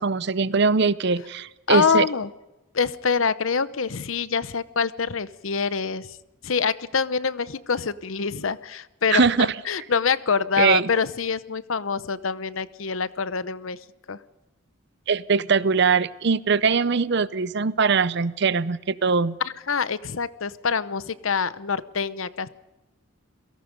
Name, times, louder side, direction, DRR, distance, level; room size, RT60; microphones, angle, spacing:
voice 1, 0.0-2.0 9.1-9.6 10.6-10.9 15.1-19.4, right 5 dB, 55° right, 17 dB, 0.6 m, -21 dB
voice 2, 1.7-2.3 2.7-6.2 6.4-13.8 14.1-14.2 19.7-22.5, left 5 dB, 75° left, 16 dB, 0.8 m, -25 dB
28.0 x 17.5 x 5.3 m, 1.0 s
head